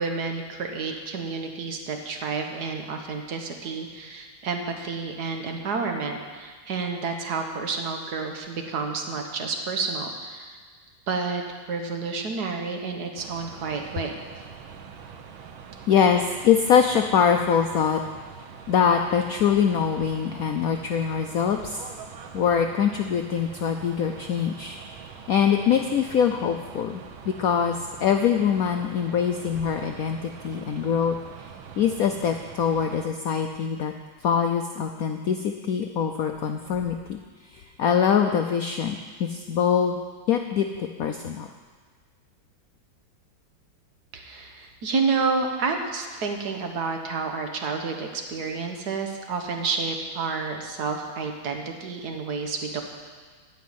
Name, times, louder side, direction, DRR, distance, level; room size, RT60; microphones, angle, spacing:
voice 1, 0.0-10.6 11.1-11.4 11.7-14.2 44.1-52.8, right 4 dB, 55° right, 4 dB, 1.7 m, -30 dB
sound 1, 13.2-33.1, right 6 dB, 90° right, 1.6 m, -44 dB
voice 2, 15.9-18.0 18.7-21.8 22.3-24.8 25.3-33.9 34.2-37.2 37.5-40.0 40.3-41.5, left 7 dB, 75° left, 5 dB, 0.8 m, -23 dB
13.5 x 5.3 x 9.4 m, 1.5 s
omnidirectional pair, 2.2 m